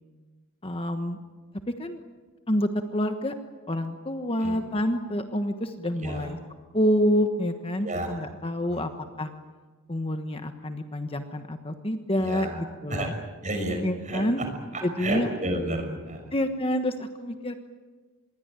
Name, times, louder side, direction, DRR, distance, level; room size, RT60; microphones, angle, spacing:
voice 1, 0.6-1.2 1.8-2.0 2.5-3.3 3.7-6.4 6.7-8.9 9.2-9.3 9.9-13.1 13.8-14.4 14.8-15.3 16.3-17.5, equal, 25° left, 7 dB, 1.3 m, -27 dB
voice 2, 6.0-6.3 7.8-8.3 8.6-8.9 12.2-12.6 12.9-13.1 13.4-14.5 14.7-16.3, right 1 dB, 35° right, 5 dB, 6.1 m, -32 dB
26.0 x 22.0 x 9.0 m, 1.3 s
head